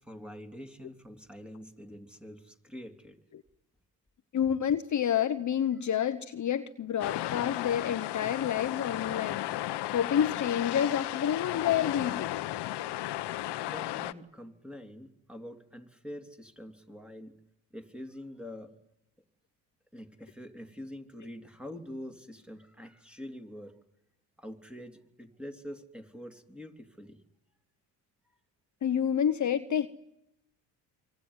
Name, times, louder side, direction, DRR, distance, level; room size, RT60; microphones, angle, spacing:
voice 1, 0.0-3.2 4.4-4.5 13.5-17.3 17.7-18.7 19.9-23.7 24.4-27.2, equal, ahead, 3.1 m, -45 dB
voice 2, 4.3-9.5 9.9-12.4 28.8-29.9, left 9 dB, 40° left, 1.1 m, -29 dB
sound 1, 7.0-14.1, left 15 dB, 65° left, 1.1 m, -34 dB
25.0 x 24.0 x 9.8 m
cardioid pair, 90°, 43 cm